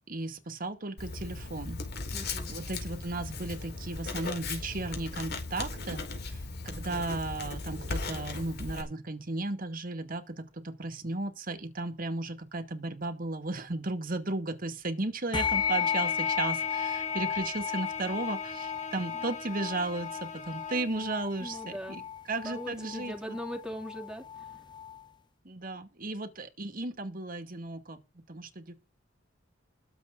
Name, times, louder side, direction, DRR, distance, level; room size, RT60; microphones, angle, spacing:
voice 1, 0.1-1.8 2.5-23.4 25.4-28.7, right 2 dB, 50° right, 2.3 m, -35 dB
Writing, 1.0-8.8, left 3 dB, 55° left, 4.5 m, -37 dB
voice 2, 2.1-2.5 19.1-19.2 21.4-22.0 22.4-24.3, equal, 5° right, 2.8 m, -40 dB
Bowed string instrument, 15.3-21.0, left 3 dB, 40° left, 2.5 m, -42 dB
sound 1, 15.3-25.0, left 8 dB, 25° left, 0.8 m, -34 dB
21.5 x 7.9 x 3.9 m
head